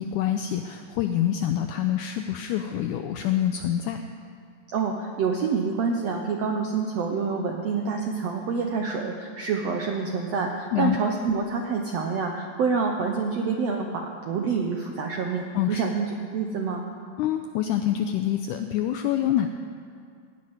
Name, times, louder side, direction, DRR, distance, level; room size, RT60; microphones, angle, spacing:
voice 1, 0.0-4.0 10.7-11.0 15.5-15.8 17.2-19.5, left 11 dB, 85° left, 6 dB, 1.8 m, -26 dB
voice 2, 4.7-16.9, right 5 dB, 80° right, 2 dB, 1.5 m, -27 dB
16.5 x 6.4 x 9.7 m, 2.3 s
omnidirectional pair, 4.1 m